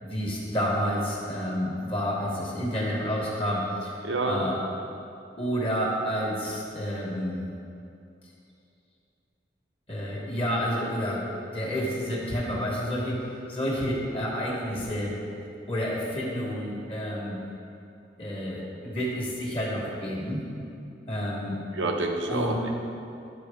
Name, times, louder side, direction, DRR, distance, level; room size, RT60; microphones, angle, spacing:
voice 1, 0.0-3.9 4.3-4.6 5.4-7.4 9.9-15.2 15.7-17.4 18.2-20.4 21.1-21.6 22.3-22.6, equal, 30° left, -4 dB, 1.3 m, -29 dB
voice 2, 4.0-4.4 21.7-22.7, right 2 dB, 85° right, 3 dB, 0.8 m, -28 dB
12.0 x 4.5 x 3.5 m, 2.6 s
head